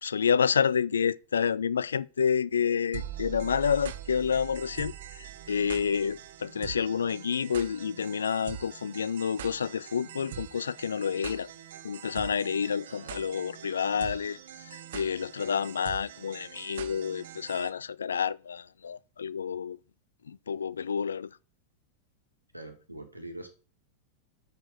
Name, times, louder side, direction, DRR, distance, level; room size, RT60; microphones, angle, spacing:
voice 1, 0.0-11.5 11.8-19.8 20.3-21.4, left 7 dB, 70° left, 0.3 m, -29 dB
sound 1, 2.9-17.7, right 10 dB, 60° right, 0.8 m, -43 dB
voice 2, 12.9-13.2 22.5-23.5, right 1 dB, 85° right, 2.0 m, -43 dB
6.6 x 6.3 x 6.4 m
figure-of-eight pair, 90°, 0 cm